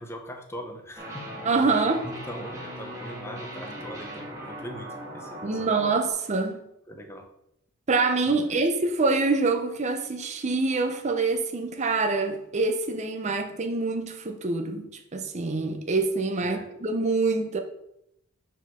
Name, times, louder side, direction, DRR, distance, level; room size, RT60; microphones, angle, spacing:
voice 1, 0.0-1.4 1.7-6.0 6.9-7.3 8.3-8.6 16.4-16.7, equal, 10° left, 0.7 m, -41 dB
sound 1, 1.0-6.1, right 1 dB, 15° right, 1.4 m, -39 dB
voice 2, 1.4-2.0 5.4-6.6 7.9-17.6, right 3 dB, 35° right, 0.6 m, -25 dB
5.1 x 4.0 x 5.6 m
head